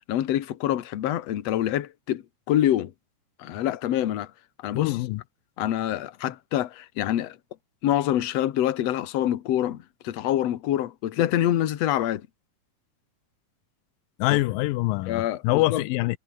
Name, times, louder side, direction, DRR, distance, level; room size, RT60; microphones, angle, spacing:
voice 1, 0.1-2.9 3.4-4.3 4.6-5.0 5.6-7.4 7.8-12.2 14.3-14.4 15.1-15.8, left 12 dB, 55° left, 2.2 m, -26 dB
voice 2, 4.7-5.2 14.2-16.2, left 19 dB, 90° left, 2.4 m, -24 dB
omnidirectional pair, 4.0 m